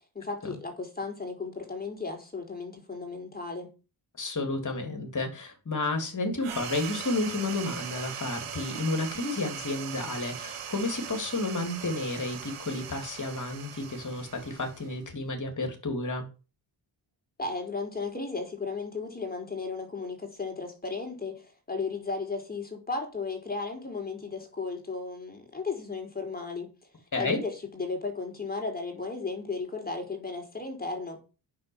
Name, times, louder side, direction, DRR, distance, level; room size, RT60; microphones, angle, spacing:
voice 1, 0.1-3.7 17.4-26.7 27.2-31.2, left 4 dB, 20° left, 4.6 m, -35 dB
voice 2, 4.2-16.3 27.1-27.4, left 2 dB, 35° left, 3.2 m, -31 dB
sound 1, 6.4-15.3, right 8 dB, 85° right, 2.0 m, -40 dB
9.4 x 6.6 x 7.2 m
cardioid pair, 95°, 49 cm